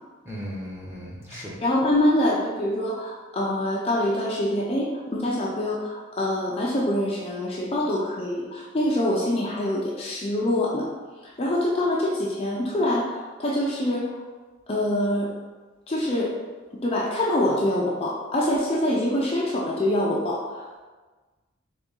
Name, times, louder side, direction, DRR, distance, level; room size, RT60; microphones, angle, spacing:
voice 1, 0.2-1.6, equal, 15° right, -6 dB, 1.0 m, -36 dB
voice 2, 1.3-10.9 11.2-14.1 14.7-15.3 15.9-16.3 16.8-20.4, left 1 dB, 30° left, -4 dB, 0.5 m, -25 dB
4.0 x 3.3 x 3.7 m, 1.3 s
head